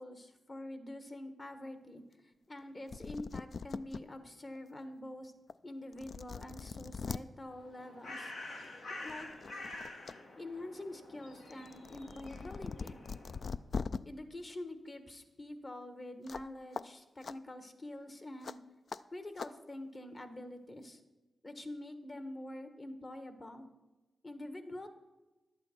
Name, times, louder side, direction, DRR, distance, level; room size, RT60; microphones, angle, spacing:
voice 1, 0.0-2.0 2.5-5.3 5.6-8.3 9.0-9.3 10.3-13.0 14.0-18.6 19.1-21.0 21.4-23.7 24.2-24.9, left 1 dB, 40° left, 8 dB, 1.3 m, -46 dB
sound 1, 2.6-2.7 2.9-4.0 4.6-4.7 5.5-5.6 5.9-7.2 8.5-8.7 9.1-10.1 10.5-14.0 16.3-16.5 16.7-16.8 17.2-17.4 18.4-18.6 18.9-19.0 19.4-19.5, left 5 dB, 65° left, 0.3 m, -41 dB
Bird, 7.5-13.6, left 2 dB, 80° left, 1.4 m, -48 dB
11.0 x 8.6 x 4.4 m, 1.1 s
cardioid pair, 50°, 0 cm